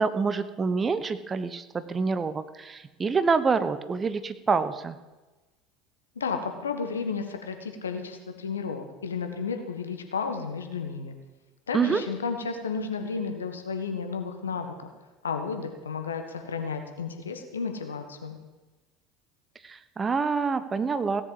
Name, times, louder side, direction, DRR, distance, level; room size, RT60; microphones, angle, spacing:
voice 1, 0.0-5.0 11.7-12.0 19.6-21.2, right 5 dB, 25° right, 12 dB, 0.9 m, -26 dB
voice 2, 6.1-11.1 11.7-14.7 15.2-18.4, left 5 dB, 80° left, 6 dB, 1.5 m, -32 dB
16.5 x 7.6 x 7.6 m, 1.2 s
figure-of-eight pair, 70°, 0 cm